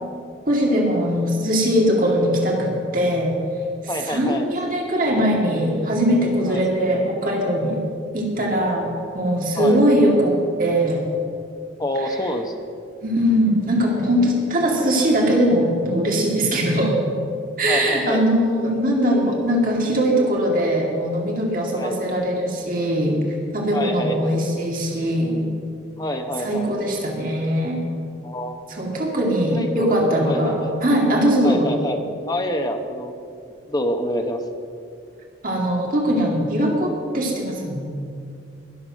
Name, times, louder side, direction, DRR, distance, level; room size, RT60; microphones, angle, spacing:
voice 1, 0.5-3.4 3.8-7.8 8.1-8.9 9.1-11.1 12.0-12.2 13.0-17.0 17.6-23.2 23.5-25.5 26.4-27.8 28.7-31.7 35.4-37.9, equal, 45° right, -1 dB, 2.2 m, -21 dB
voice 2, 3.9-4.5 6.5-6.7 9.6-9.8 11.8-12.5 17.7-18.2 21.7-22.0 23.7-24.4 26.0-26.8 28.2-28.6 29.5-30.8 31.4-33.1 33.7-34.4, left 1 dB, 20° left, 5 dB, 0.9 m, -27 dB
20.5 x 6.9 x 6.4 m, 2.4 s
head